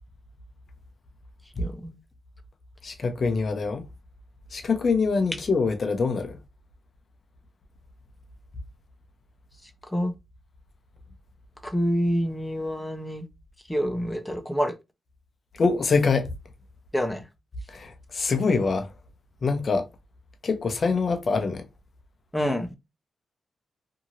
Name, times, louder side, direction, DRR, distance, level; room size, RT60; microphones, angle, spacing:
voice 1, 1.6-2.0 9.9-10.1 11.6-13.2 13.7-14.7 16.9-17.2 22.3-22.7, equal, 10° left, 0.7 m, -27 dB
voice 2, 2.8-3.8 4.5-6.4 15.6-16.3 17.7-18.9 19.4-19.9 20.4-21.6, left 4 dB, 55° left, 0.7 m, -24 dB
2.8 x 2.7 x 2.6 m
supercardioid pair, 50°, 0 cm